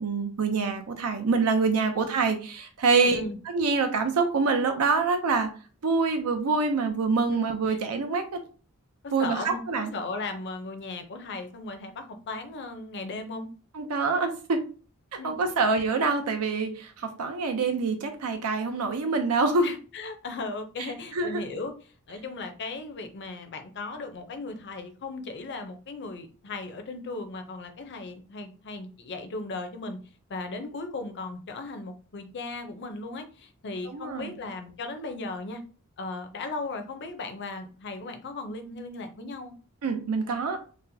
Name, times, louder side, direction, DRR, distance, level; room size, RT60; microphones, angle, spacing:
voice 1, 0.0-5.5 5.8-8.4 9.1-9.9 13.7-14.6 15.2-19.7 21.1-21.4 33.8-34.3 39.8-40.6, right 4 dB, 80° right, 6 dB, 0.5 m, -26 dB
voice 2, 3.0-3.4 7.3-7.4 7.7-7.8 9.0-13.5 15.2-15.3 19.6-21.7 22.1-30.0 30.3-35.6 36.0-39.5, left 3 dB, 55° left, 7 dB, 0.5 m, -37 dB
4.1 x 2.1 x 2.6 m, 0.38 s
head